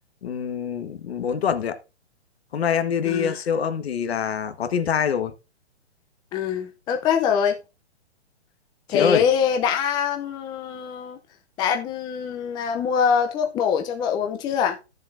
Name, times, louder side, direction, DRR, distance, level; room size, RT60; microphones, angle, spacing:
voice 1, 0.2-1.8 2.5-5.3 8.9-9.2, left 7 dB, 65° left, 1.5 m, -25 dB
voice 2, 3.0-3.4 6.3-7.6 8.9-11.2 11.6-14.8, left 7 dB, 15° left, 0.6 m, -24 dB
13.0 x 7.3 x 2.6 m
hypercardioid pair, 140°, 34 cm